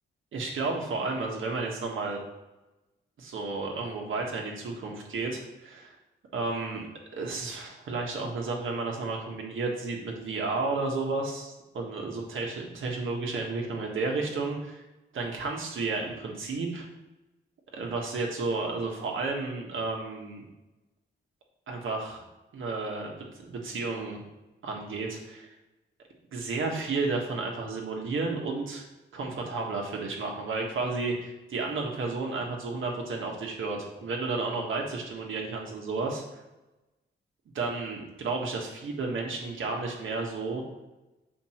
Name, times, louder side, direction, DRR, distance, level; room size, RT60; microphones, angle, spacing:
voice 1, 0.3-2.2 3.2-5.9 6.3-6.9 7.1-14.8 15.1-16.9 17.7-20.5 21.7-22.2 22.5-24.2 24.6-25.4 26.3-28.8 29.1-36.2 37.6-40.6, right 3 dB, 90° right, 0 dB, 1.6 m, -32 dB
6.8 x 5.1 x 4.5 m, 1.0 s
wide cardioid pair, 165°, 20 cm